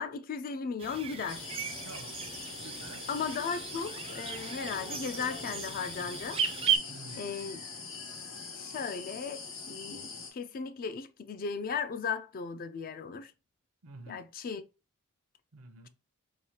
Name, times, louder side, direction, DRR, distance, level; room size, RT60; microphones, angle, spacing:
voice 1, 0.0-1.5 3.1-6.4 7.2-7.6 8.5-9.4 9.7-13.3 14.1-14.6, left 6 dB, 40° left, 0.4 m, -36 dB
sound 1, 0.8-6.8, right 7 dB, 25° right, 0.4 m, -35 dB
sound 2, 1.3-10.3, left 4 dB, 65° left, 1.5 m, -43 dB
voice 2, 1.8-2.2 2.5-3.1 6.9-7.4 13.8-14.3 15.5-15.9, right 2 dB, 70° right, 0.6 m, -49 dB
4.7 x 2.3 x 2.8 m
head